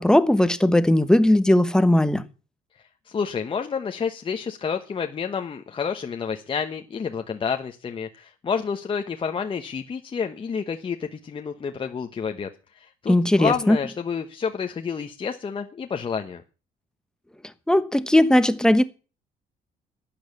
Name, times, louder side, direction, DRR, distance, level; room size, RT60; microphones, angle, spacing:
voice 1, 0.0-2.2 13.1-13.8 17.7-18.8, left 1 dB, 5° left, 1.1 m, -18 dB
voice 2, 3.1-12.5 12.8-16.4, left 6 dB, 30° left, 1.1 m, -29 dB
12.0 x 8.9 x 7.2 m
cardioid pair, 110°, 17 cm